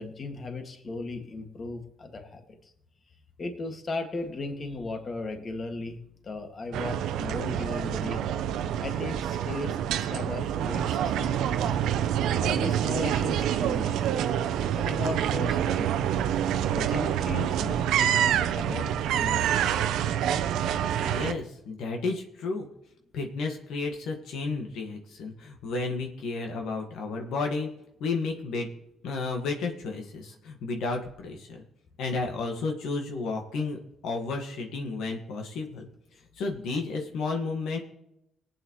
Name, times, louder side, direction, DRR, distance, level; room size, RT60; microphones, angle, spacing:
voice 1, 0.0-2.7 3.4-8.2 8.8-11.7 12.4-14.4 14.8-15.9 16.7-18.9 19.2-19.6, left 3 dB, 40° left, 4 dB, 2.0 m, -36 dB
sound 1, 6.7-21.3, right 10 dB, 85° right, 0.6 m, -27 dB
voice 2, 21.0-22.7 23.1-27.7 28.0-28.7 29.0-31.6 32.0-33.8 34.0-35.9 36.4-37.8, left 3 dB, 80° left, 2 dB, 1.7 m, -32 dB
19.0 x 9.0 x 3.1 m, 0.81 s
cardioid pair, 90°, 0 cm